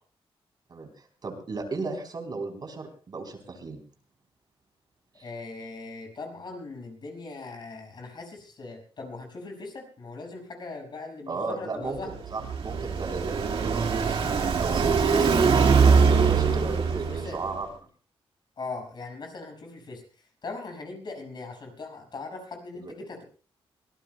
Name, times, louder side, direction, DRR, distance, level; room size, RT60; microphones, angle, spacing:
voice 1, 0.7-3.8 5.2-5.3 11.3-14.2 14.6-15.3 16.1-17.7 22.7-22.9, right 3 dB, 45° right, 4 dB, 3.5 m, -35 dB
voice 2, 5.1-12.2 16.0-16.5 17.1-17.4 18.6-23.2, left 3 dB, 50° left, 2 dB, 5.8 m, -40 dB
Car passing by, 12.0-17.5, right 5 dB, 65° right, 2.1 m, -22 dB
24.0 x 18.0 x 2.2 m, 0.38 s
cardioid pair, 105°, 10 cm